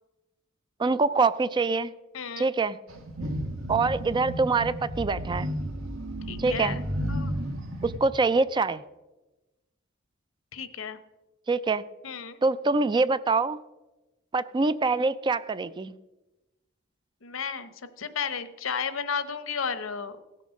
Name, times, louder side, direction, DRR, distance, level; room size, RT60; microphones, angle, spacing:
voice 1, 0.8-1.9 2.4-2.8 3.7-5.5 6.4-6.8 7.8-8.8 11.5-11.8 12.4-13.6 14.3-15.9, right 3 dB, 20° right, 15 dB, 0.3 m, -25 dB
voice 2, 2.1-2.5 6.3-6.8 7.1-7.3 10.5-11.0 12.0-12.4 17.2-20.2, left 6 dB, 75° left, 13 dB, 0.9 m, -33 dB
sound 1, 2.9-8.0, equal, 75° right, 1.5 m, -33 dB
16.5 x 6.8 x 6.3 m, 1.1 s
head